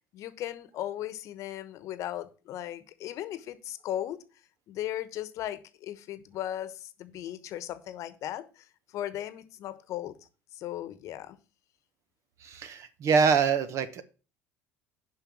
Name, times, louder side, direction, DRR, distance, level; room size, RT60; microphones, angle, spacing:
voice 1, 0.1-4.2 4.7-8.7 8.9-10.1 10.5-11.4, left 12 dB, 60° left, 14 dB, 1.1 m, -37 dB
voice 2, 12.4-14.0, right 6 dB, 55° right, 12 dB, 1.2 m, -25 dB
7.0 x 5.6 x 7.2 m, 0.35 s
hypercardioid pair, 75°, 6 cm